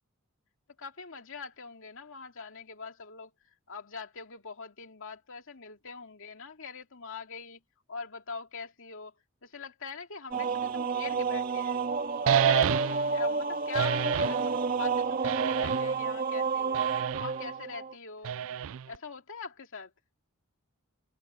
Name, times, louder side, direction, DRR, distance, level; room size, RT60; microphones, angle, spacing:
voice 1, 0.8-3.3 3.7-7.6 7.9-9.1 9.4-11.8 12.2-16.8 17.2-18.3 18.9-19.9, left 5 dB, 65° left, 2.4 m, -43 dB
sound 1, 10.3-17.9, right 4 dB, 40° right, 2.6 m, -30 dB
sound 2, 12.3-13.2 13.7-14.4 15.2-16.0 16.7-17.4 18.2-19.0, right 9 dB, 65° right, 0.4 m, -28 dB
head